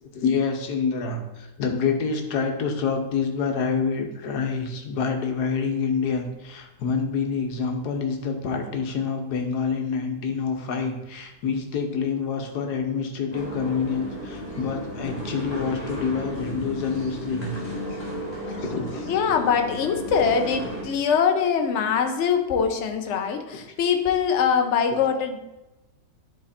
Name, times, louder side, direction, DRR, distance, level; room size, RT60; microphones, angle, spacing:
voice 1, 0.0-18.0 18.4-19.1, left 5 dB, 80° left, 4 dB, 1.6 m, -27 dB
sound 1, 13.3-20.8, equal, 15° left, 2.8 m, -34 dB
voice 2, 19.1-25.4, left 6 dB, 55° left, 5 dB, 1.0 m, -23 dB
11.0 x 4.3 x 4.3 m, 0.99 s
omnidirectional pair, 1.7 m